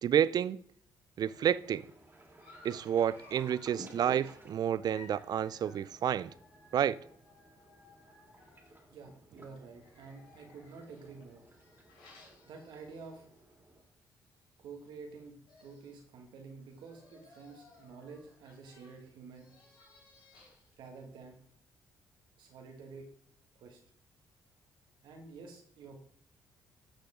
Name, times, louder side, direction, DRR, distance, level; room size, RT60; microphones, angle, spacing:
voice 1, 0.0-0.6 1.2-1.8 2.6-6.3 6.7-7.0, right 9 dB, 55° right, 0.4 m, -30 dB
sound 1, 1.2-13.8, right 1 dB, 25° right, 2.6 m, -56 dB
Dog, 2.4-9.0 9.7-13.4 13.8-13.9 14.2-14.3 15.2-15.3 15.5-16.0 16.6-20.7, left 3 dB, 80° left, 3.5 m, -60 dB
voice 2, 8.9-11.4 12.4-13.3 14.6-19.5 20.8-21.4 22.4-23.1 23.6-23.8 25.0-26.0, right 4 dB, 80° right, 1.9 m, -49 dB
11.5 x 6.4 x 3.7 m
supercardioid pair, 70°, 8 cm